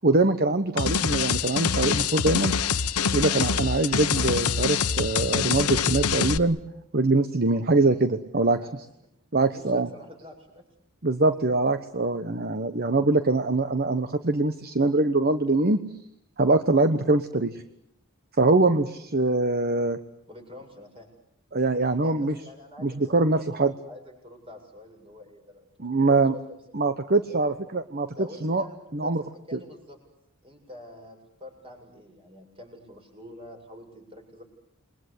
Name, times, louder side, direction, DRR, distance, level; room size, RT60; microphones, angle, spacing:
voice 1, 0.0-2.5 3.1-6.6 6.9-8.6 9.3-9.9 11.0-15.8 16.4-17.6 18.4-20.0 21.5-22.4 22.8-23.7 25.8-26.3 26.7-28.1 28.4-28.6 28.9-29.2 29.5-29.6, right 2 dB, 45° right, 9 dB, 1.2 m, -23 dB
sound 1, 0.8-6.4, left 6 dB, 85° left, 1.2 m, -25 dB
voice 2, 8.4-8.7 9.4-10.7 18.5-18.6 20.3-21.1 22.0-26.6 27.2-27.4 28.1-30.0 30.4-34.4, left 1 dB, 25° right, 3 dB, 7.6 m, -46 dB
28.5 x 22.5 x 8.4 m, 0.74 s
head